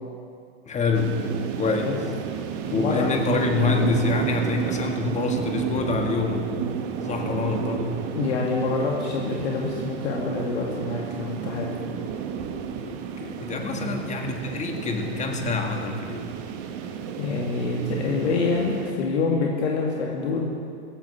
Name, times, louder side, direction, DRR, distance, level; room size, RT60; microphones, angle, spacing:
voice 1, 0.7-1.2 1.5-2.0 2.7-6.5 7.0-8.1 12.7-16.3, left 4 dB, 20° left, 3 dB, 1.7 m, -26 dB
sound 1, 0.9-18.9, right 7 dB, 50° right, 1.5 m, -31 dB
voice 2, 2.7-3.1 8.1-11.8 13.8-14.1 17.2-20.4, left 4 dB, 70° left, -1 dB, 2.2 m, -26 dB
16.0 x 15.5 x 4.3 m, 2.3 s
hypercardioid pair, 110°, 34 cm